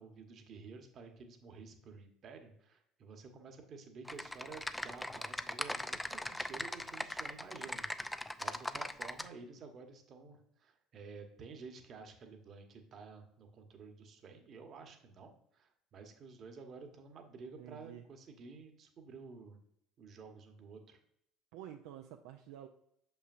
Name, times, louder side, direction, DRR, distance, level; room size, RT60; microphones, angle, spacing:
voice 1, 0.0-19.6 20.0-21.0, right 4 dB, 45° right, 5 dB, 1.1 m, -52 dB
Typing, 4.0-9.3, left 1 dB, 10° left, 0.4 m, -40 dB
voice 2, 17.4-18.0 21.5-22.7, right 11 dB, 70° right, 4 dB, 0.4 m, -50 dB
6.7 x 5.7 x 2.5 m, 0.72 s
hypercardioid pair, 65°, 0 cm